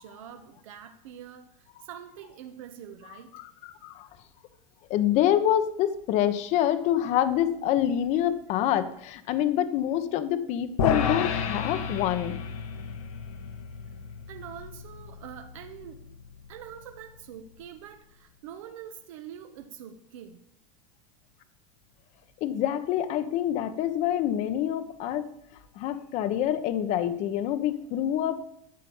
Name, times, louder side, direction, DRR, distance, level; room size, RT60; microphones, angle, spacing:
voice 1, 0.0-3.3 14.3-16.0 16.5-20.4, right 9 dB, 65° right, 5 dB, 1.3 m, -45 dB
voice 2, 3.3-4.1 4.9-12.4 22.4-25.3 25.8-28.4, left 11 dB, 40° left, 11 dB, 1.1 m, -26 dB
sound 1, 10.8-17.2, left 6 dB, 90° left, 2.0 m, -32 dB
13.5 x 7.6 x 7.2 m, 0.73 s
supercardioid pair, 150°, 18 cm